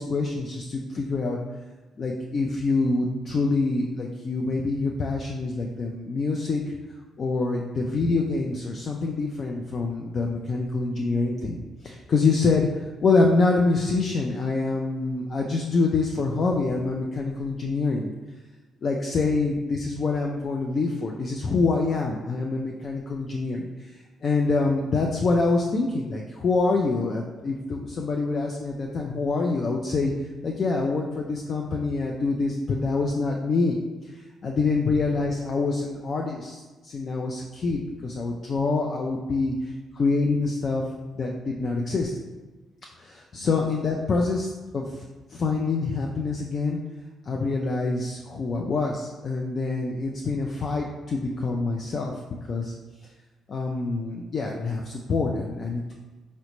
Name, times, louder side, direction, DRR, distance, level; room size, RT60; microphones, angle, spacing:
voice 1, 0.0-1.4 2.0-6.8 7.2-18.1 18.8-23.9 24.2-30.1 30.4-33.8 34.1-40.8 41.2-42.1 43.0-45.0 45.3-46.8 47.3-52.1 52.5-52.7 53.5-55.9, left 3 dB, 45° left, 0 dB, 0.3 m, -26 dB
3.8 x 2.1 x 2.9 m, 1.2 s
cardioid pair, 90°, 0 cm